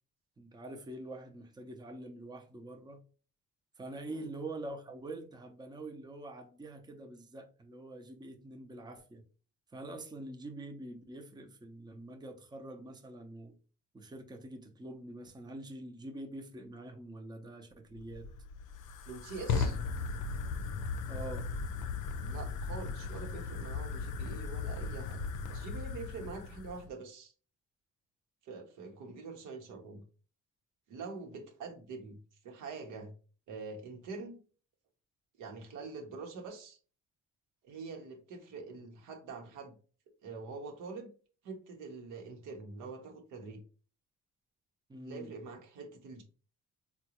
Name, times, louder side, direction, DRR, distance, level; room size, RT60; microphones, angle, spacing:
voice 1, 0.4-3.0 3.8-9.3 9.7-13.5 13.9-18.3 21.1-21.5 44.9-45.3, right 2 dB, 15° right, 0.6 m, -45 dB
Fire, 17.9-26.9, left 4 dB, 85° left, 0.5 m, -37 dB
voice 2, 19.1-19.8 22.2-25.2 25.5-27.3 28.4-30.0 30.9-32.2 32.4-33.1 33.5-34.4 35.4-36.8 37.6-39.7 40.2-41.1 41.4-43.6 45.0-46.2, right 4 dB, 85° right, 1.0 m, -45 dB
3.7 x 2.3 x 2.9 m
cardioid pair, 90°, 30 cm